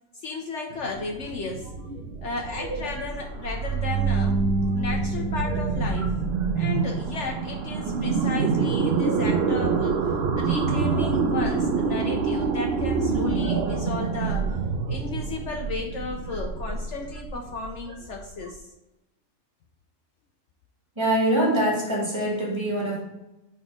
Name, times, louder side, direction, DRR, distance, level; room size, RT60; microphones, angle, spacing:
voice 1, 0.1-1.7 2.2-6.1 6.6-10.0 10.4-14.5 14.9-18.6, left 4 dB, 65° left, 3 dB, 0.9 m, -34 dB
sound 1, 0.7-18.5, right 5 dB, 55° right, 0.8 m, -27 dB
sound 2, 3.5-6.7, right 4 dB, 85° right, 1.1 m, -28 dB
voice 2, 21.0-23.1, right 1 dB, 20° right, -4 dB, 1.9 m, -24 dB
5.6 x 4.4 x 4.8 m, 0.99 s
omnidirectional pair, 1.5 m